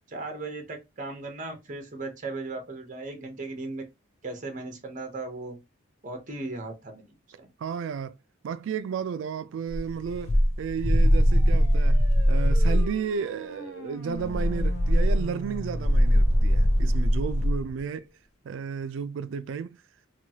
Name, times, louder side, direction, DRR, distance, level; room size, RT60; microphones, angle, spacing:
voice 1, 0.1-3.8 4.2-5.6 6.0-7.1 7.4-7.5, right 2 dB, 40° right, 0.8 m, -37 dB
voice 2, 7.6-8.2 8.4-12.0 12.3-18.1 18.4-19.8, right 6 dB, 65° right, 0.3 m, -33 dB
sound 1, 9.7-12.9 14.1-17.6, equal, 35° left, 0.5 m, -21 dB
sound 2, 10.9-17.8, equal, 70° left, 1.1 m, -41 dB
2.9 x 2.3 x 2.8 m
head